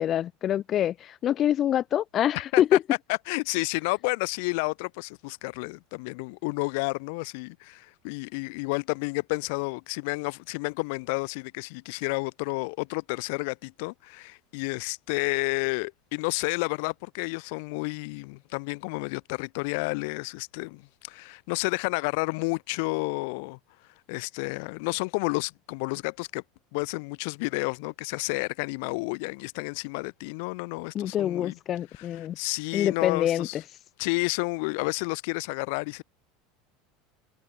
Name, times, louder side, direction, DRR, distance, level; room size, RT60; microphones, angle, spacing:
voice 1, 0.0-2.8 30.9-32.4 32.7-33.5, left 11 dB, 35° left, 0.3 m, -25 dB
voice 2, 2.3-2.8 3.3-23.6 24.1-26.4 26.7-31.5 32.0-32.1 32.4-33.6 34.0-36.0, left 30 dB, 70° left, 1.7 m, -31 dB
supercardioid pair, 140°, 0 cm